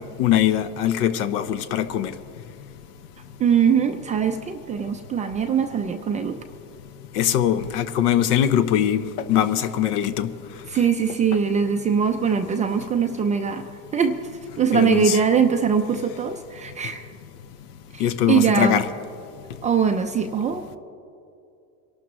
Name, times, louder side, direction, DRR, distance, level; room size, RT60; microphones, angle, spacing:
voice 1, 0.0-2.1 7.1-9.0 9.3-10.3 14.7-15.2 18.0-18.9, left 10 dB, 75° left, 12 dB, 1.0 m, -21 dB
voice 2, 3.4-6.4 10.7-13.6 13.9-14.3 14.6-17.0 17.9-18.8 19.6-20.8, right 7 dB, 15° right, 5 dB, 0.3 m, -22 dB
24.5 x 12.0 x 3.1 m, 2.5 s
supercardioid pair, 125°, 47 cm